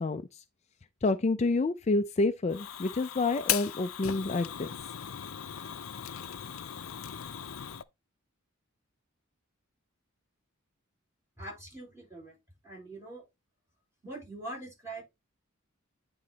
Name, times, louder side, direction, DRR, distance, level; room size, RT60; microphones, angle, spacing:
voice 1, 0.0-0.4 1.0-4.7, left 3 dB, 30° left, 0.4 m, -28 dB
Fire, 2.5-7.8, left 10 dB, 75° left, 0.6 m, -37 dB
voice 2, 11.4-12.4 12.6-13.2 14.0-15.0, right 2 dB, 15° right, 5.7 m, -43 dB
9.4 x 3.8 x 4.0 m
head